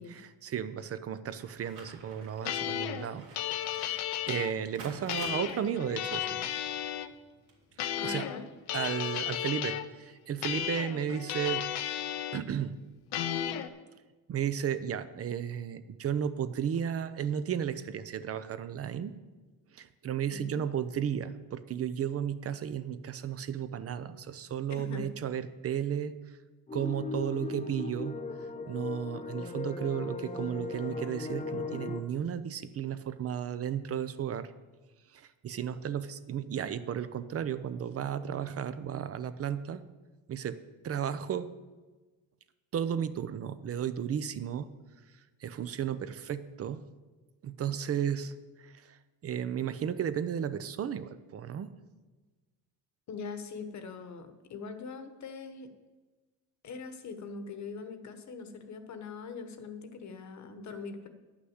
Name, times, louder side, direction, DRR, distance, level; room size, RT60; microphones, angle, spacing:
voice 1, 0.0-3.3 3.6-4.0 4.3-6.5 7.8-8.3 8.7-11.6 12.3-12.7 14.3-19.1 19.7-26.4 26.7-28.2 28.7-34.5 35.1-39.8 40.3-40.6 40.8-41.5 42.7-44.7 45.4-46.8 47.4-48.3 48.6-49.0 49.2-51.7, right 8 dB, 35° right, 13 dB, 0.6 m, -34 dB
sound 1, 1.4-8.1, right 4 dB, 85° right, 2.4 m, -52 dB
sound 2, 2.4-4.5 5.1-7.1 7.8-8.4 8.7-9.9 10.4-12.4 13.1-13.7, left 11 dB, 75° left, 0.8 m, -34 dB
voice 2, 8.0-8.5 20.3-20.6 24.7-25.1 53.1-55.7 56.6-61.1, left 4 dB, 45° left, 8 dB, 1.2 m, -42 dB
sound 3, 26.7-32.0, left 3 dB, 15° left, 0.8 m, -37 dB
9.8 x 6.1 x 7.9 m, 1.3 s
cardioid pair, 110°, 39 cm